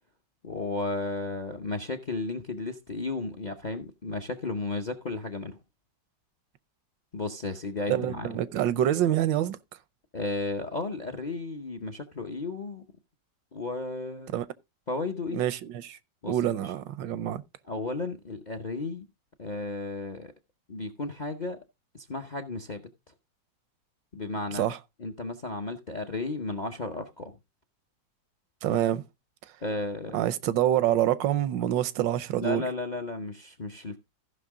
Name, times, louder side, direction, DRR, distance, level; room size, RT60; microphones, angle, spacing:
voice 1, 0.4-5.6 7.1-8.3 10.1-12.8 13.5-14.3 14.9-15.4 16.2-16.4 16.6-16.7 17.7-19.1 19.4-20.3 20.7-21.6 21.9-22.8 24.1-24.7 25.0-27.3 28.7-28.8 29.6-30.2 32.4-34.0, left 3 dB, 40° left, 0.6 m, -34 dB
voice 2, 7.9-9.6 14.3-14.4 15.3-16.0 16.3-17.4 24.5-24.8 28.6-29.0 30.1-32.6, right 12 dB, 80° right, 1.4 m, -26 dB
15.0 x 6.0 x 3.6 m
omnidirectional pair, 2.0 m